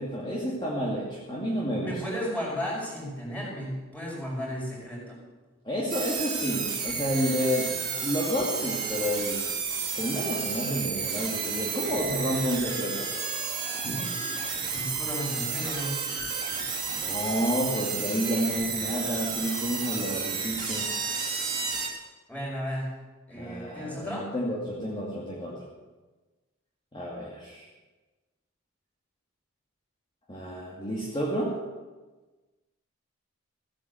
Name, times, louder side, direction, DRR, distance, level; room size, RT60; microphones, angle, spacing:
voice 1, 0.0-2.0 5.6-7.8 8.0-9.4 10.0-13.1 13.7-14.1 16.9-20.9 23.3-25.6 26.9-27.7 30.3-31.6, equal, 25° left, -4 dB, 2.4 m, -30 dB
voice 2, 1.8-5.2 14.7-16.0 22.3-22.9 23.3-24.3, equal, 5° left, -4 dB, 5.5 m, -34 dB
sound 1, 5.9-21.9, right 5 dB, 20° right, 2.9 m, -31 dB
16.5 x 9.5 x 7.7 m, 1.2 s
head